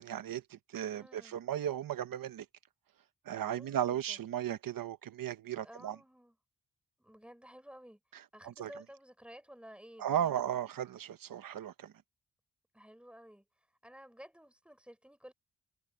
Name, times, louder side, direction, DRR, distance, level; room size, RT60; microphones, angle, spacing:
voice 1, 0.0-2.4 3.2-6.0 8.4-8.7 10.0-11.9, right 10 dB, 85° right, 1.0 m, -35 dB
voice 2, 0.9-1.4 3.4-4.2 5.6-6.4 7.0-8.0 8.3-10.4 12.7-13.4 13.8-15.3, equal, 5° right, 4.7 m, -53 dB
cardioid pair, 75°, 33 cm